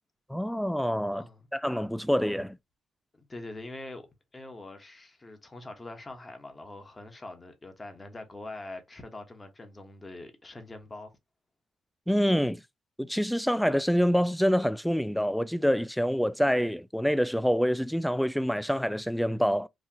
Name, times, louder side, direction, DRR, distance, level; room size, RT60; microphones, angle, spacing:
voice 1, 0.3-1.2 1.5-2.6 12.1-12.6 13.0-19.7, equal, ahead, 0.3 m, -26 dB
voice 2, 1.1-1.5 3.1-11.2, left 2 dB, 25° left, 1.2 m, -44 dB
4.2 x 2.5 x 2.8 m
cardioid pair, 90°, 0 cm